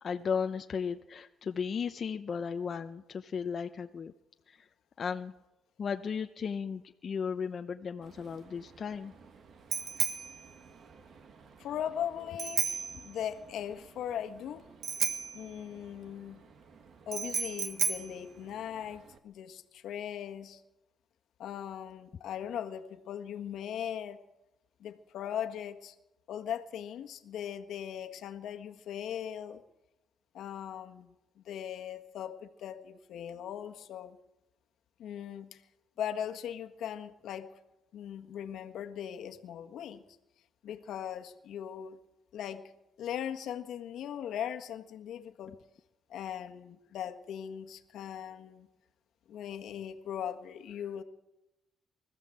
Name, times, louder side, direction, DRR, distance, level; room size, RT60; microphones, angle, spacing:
voice 1, 0.0-4.1 4.5-4.6 5.0-5.3 5.8-9.1, left 6 dB, 50° left, 6 dB, 0.9 m, -35 dB
Bicycle bell, 8.0-19.2, right 5 dB, 60° right, 2.1 m, -36 dB
voice 2, 11.6-14.6 15.3-16.4 17.1-20.6 21.4-24.2 24.8-25.9 26.3-29.6 30.3-31.1 31.4-34.2 35.0-35.6 36.0-37.5 37.9-40.0 40.6-42.0 42.3-42.6 43.0-45.6 46.1-48.7 49.3-51.0, left 9 dB, 75° left, 7 dB, 1.6 m, -39 dB
24.0 x 14.5 x 7.8 m, 0.98 s
cardioid pair, 90°, 0 cm